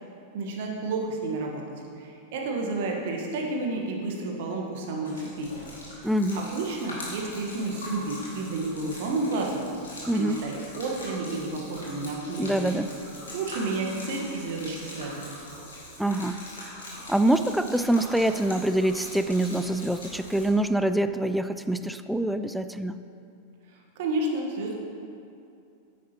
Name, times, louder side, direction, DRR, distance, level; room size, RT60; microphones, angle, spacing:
voice 1, 0.3-1.6 2.0-5.5 6.3-9.7 10.1-12.7 13.3-15.3 23.9-24.7, right 3 dB, 50° right, 0 dB, 1.3 m, -31 dB
Gurgling / Liquid, 5.0-20.5, left 1 dB, 70° left, 2.3 m, -42 dB
voice 2, 6.0-6.5 10.1-10.4 12.4-12.9 16.0-16.4 17.1-23.0, right 1 dB, ahead, 10 dB, 0.3 m, -25 dB
9.7 x 9.1 x 2.9 m, 2.6 s
figure-of-eight pair, 90°, 0 cm